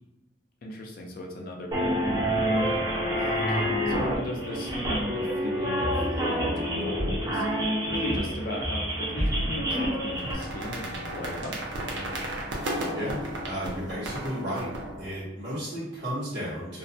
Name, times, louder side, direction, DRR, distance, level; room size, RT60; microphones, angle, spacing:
voice 1, 0.6-3.1 3.5-11.7, left 1 dB, 50° left, 0 dB, 0.4 m, -37 dB
sound 1, 1.7-10.3, equal, 20° right, 0.5 m, -27 dB
sound 2, 9.7-15.2, right 1 dB, 70° right, 0.5 m, -34 dB
voice 2, 12.9-14.7 15.0-16.8, equal, 85° right, -12 dB, 1.1 m, -34 dB
2.4 x 2.1 x 2.6 m, 0.98 s
head